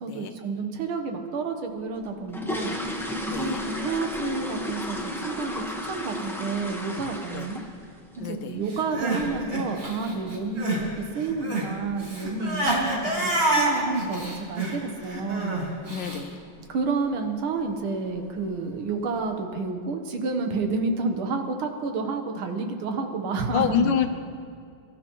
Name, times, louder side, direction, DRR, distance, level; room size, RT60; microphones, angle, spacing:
voice 1, 0.0-2.8 3.2-7.6 8.2-10.9 11.2-15.6 16.7-23.9, right 4 dB, 90° right, 5 dB, 2.0 m, -30 dB
sound 1, 2.0-7.9 8.1-8.4 8.8-8.9 9.2-9.4 9.8-10.0 10.2-10.3 10.9-11.0 11.3-11.4 12.0-12.3 12.5-12.6 13.0-13.3 13.6-13.7 14.1-14.2 14.8-15.1 15.5-15.8 16.1-16.2 16.7-16.8 17.5-17.7 18.1-18.6 19.0-19.1, left 1 dB, ahead, 0.8 m, -33 dB
voice 2, 3.3-3.6 7.3-7.5 8.2-8.6 15.9-16.4 23.5-24.1, left 8 dB, 70° left, 7 dB, 1.3 m, -27 dB
Crying sobbing, 8.7-10.9 11.1-16.2, right 2 dB, 30° right, 2.2 m, -28 dB
23.5 x 12.5 x 3.1 m, 2.4 s
omnidirectional pair, 2.2 m